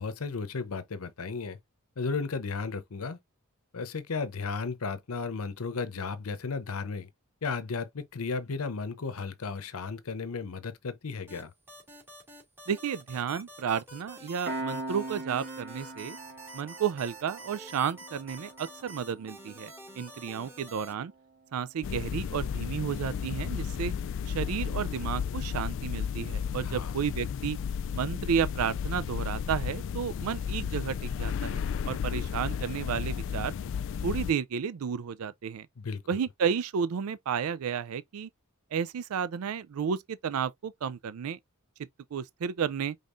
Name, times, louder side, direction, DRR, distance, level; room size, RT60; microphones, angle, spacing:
voice 1, 0.0-1.6 2.0-3.2 3.7-7.1 7.4-11.5 26.6-26.9 35.8-36.0, left 4 dB, 80° left, 0.7 m, -34 dB
sound 1, 11.3-20.9, right 1 dB, 10° right, 2.4 m, -48 dB
voice 2, 12.7-16.2 16.5-21.1 21.5-23.9 24.3-27.6 27.9-33.6 34.0-35.7 36.1-38.3 38.7-41.4 42.1-43.0, right 7 dB, 80° right, 0.4 m, -32 dB
Piano, 14.5-25.5, right 2 dB, 50° right, 1.5 m, -44 dB
sound 2, 21.8-34.3, left 7 dB, 60° left, 0.3 m, -33 dB
5.4 x 3.7 x 2.5 m
head